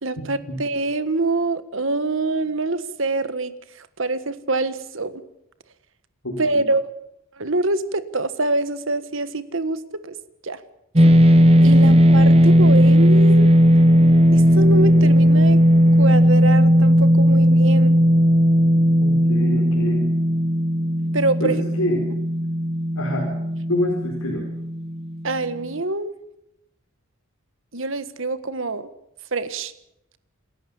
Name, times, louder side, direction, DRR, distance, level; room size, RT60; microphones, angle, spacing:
voice 1, 0.0-5.2 6.4-6.9 7.4-10.1 10.4-10.6 11.6-13.6 14.3-15.6 16.0-17.9 21.1-21.6 25.2-26.1 27.7-28.9 29.3-29.7, right 2 dB, 60° right, 13 dB, 1.5 m, -25 dB
voice 2, 6.2-6.7 19.0-20.1 21.4-22.1 22.9-23.3 23.7-24.5, left 1 dB, 80° left, -1 dB, 4.9 m, -26 dB
sound 1, 11.0-25.4, equal, 30° right, 1.2 m, -16 dB
28.0 x 14.0 x 7.3 m, 0.82 s
head